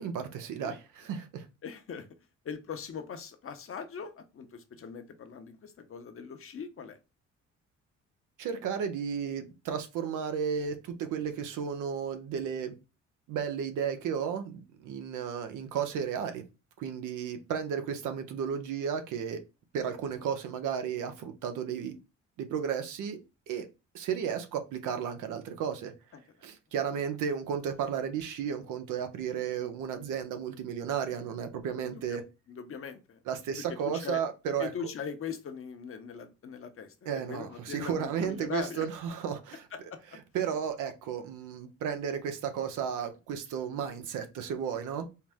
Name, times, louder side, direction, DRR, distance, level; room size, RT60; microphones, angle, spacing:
voice 1, 0.0-1.5 8.4-12.7 13.3-16.4 16.8-19.4 19.7-22.0 22.4-23.2 23.5-23.7 23.9-25.9 26.4-32.2 33.3-34.7 37.1-39.6 40.3-45.1, right 7 dB, 85° right, 0.8 m, -33 dB
voice 2, 1.6-2.1 2.4-7.0 26.1-26.2 26.9-27.0 31.8-32.2 32.5-33.2 33.8-34.2 34.6-38.9 39.7-40.0, left 6 dB, 45° left, 0.8 m, -40 dB
4.6 x 2.0 x 3.5 m
cardioid pair, 90°, 30 cm